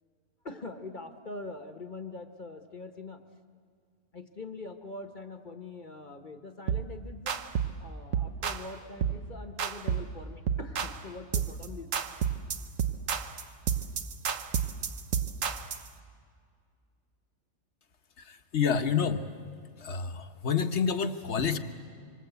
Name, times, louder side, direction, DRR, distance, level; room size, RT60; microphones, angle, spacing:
voice 1, 0.4-3.2 4.1-7.4 7.8-11.9, left 3 dB, 40° left, 8 dB, 1.3 m, -43 dB
sound 1, 6.7-6.9 7.3-7.8 8.1-8.7 9.0-9.2 9.6-10.1 10.5-11.0 11.3-11.7 11.9-15.9, right 8 dB, 90° right, 1.4 m, -31 dB
voice 2, 18.2-19.2 19.8-21.6, left 6 dB, 65° left, 9 dB, 1.4 m, -28 dB
26.0 x 25.5 x 8.2 m, 2.1 s
omnidirectional pair, 1.3 m